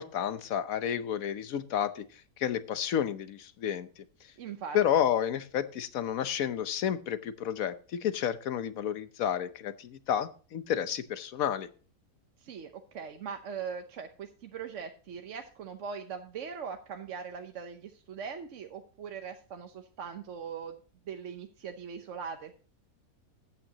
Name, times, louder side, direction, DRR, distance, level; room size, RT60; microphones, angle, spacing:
voice 1, 0.0-2.0 2.4-3.9 4.7-7.7 8.0-11.7, left 9 dB, 65° left, 12 dB, 1.2 m, -30 dB
voice 2, 4.4-4.8 12.4-20.7 21.1-22.5, right 6 dB, 55° right, 5 dB, 1.0 m, -40 dB
14.0 x 9.0 x 2.9 m, 0.38 s
omnidirectional pair, 1.7 m